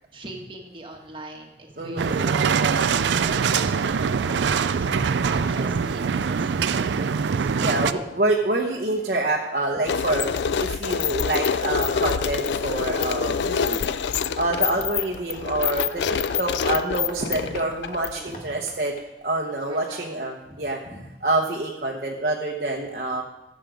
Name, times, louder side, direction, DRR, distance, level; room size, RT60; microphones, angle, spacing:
voice 1, 0.1-8.0 17.2-17.4 18.1-18.6 19.7-20.1 20.4-21.1, right 1 dB, 30° right, 2 dB, 1.5 m, -41 dB
voice 2, 1.8-2.3 5.6-5.7 7.6-10.3 10.7-13.9 14.3-18.9 19.2-20.8 21.2-23.2, right 2 dB, 50° right, -2 dB, 1.0 m, -26 dB
sound 1, 2.0-7.9, right 6 dB, 85° right, 0.4 m, -23 dB
sound 2, 9.8-18.4, left 6 dB, 75° left, 0.4 m, -26 dB
Tap, 14.6-20.0, left 2 dB, 50° left, 1.8 m, -47 dB
14.0 x 7.5 x 5.1 m, 0.97 s
head